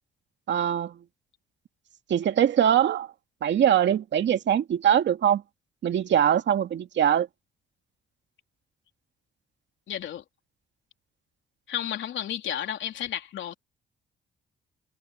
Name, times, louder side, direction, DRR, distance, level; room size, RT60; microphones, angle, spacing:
voice 1, 0.5-1.0 2.1-3.1 3.4-5.4 5.8-7.3, right 9 dB, 65° right, 2.4 m, -22 dB
voice 2, 9.9-10.2 11.7-13.5, left 10 dB, 70° left, 3.5 m, -32 dB
cardioid pair, 90°, 20 cm